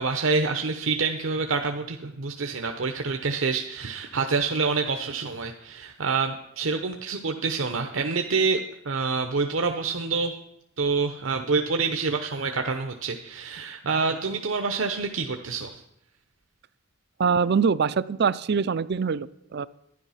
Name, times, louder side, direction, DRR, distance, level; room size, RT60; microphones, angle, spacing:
voice 1, 0.0-10.3 10.8-15.8, right 4 dB, 70° right, 5 dB, 0.8 m, -27 dB
voice 2, 17.2-19.7, right 6 dB, 55° right, 17 dB, 0.4 m, -24 dB
12.0 x 10.5 x 5.7 m, 0.81 s
head